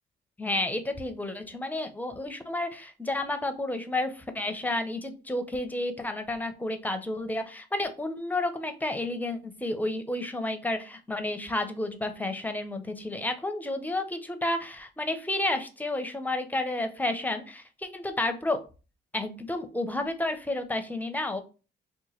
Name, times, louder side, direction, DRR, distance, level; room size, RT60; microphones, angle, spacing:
voice 1, 0.4-18.6 19.1-21.4, left 2 dB, 10° left, 7 dB, 0.6 m, -31 dB
2.9 x 2.2 x 4.1 m, 0.33 s
cardioid pair, 90°, 20 cm